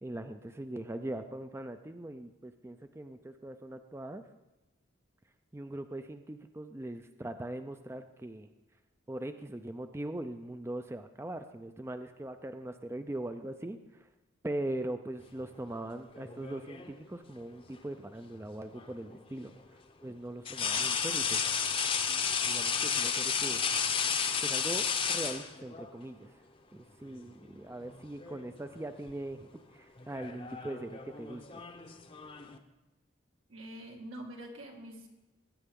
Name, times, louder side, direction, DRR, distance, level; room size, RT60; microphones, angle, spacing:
voice 1, 0.0-4.2 5.5-8.5 9.1-14.1 14.4-19.5 20.0-21.4 22.4-23.6 24.4-26.4 26.7-31.6, right 1 dB, 10° right, 8 dB, 0.3 m, -41 dB
sound 1, 16.1-17.0 18.8-18.9 20.4-25.9 27.1-27.3 27.7-28.5 28.7-29.1 30.0-32.6, left 6 dB, 25° left, 0.7 m, -32 dB
voice 2, 33.5-35.1, right 1 dB, 85° right, 1 dB, 2.1 m, -45 dB
19.5 x 9.0 x 3.6 m, 1.0 s
head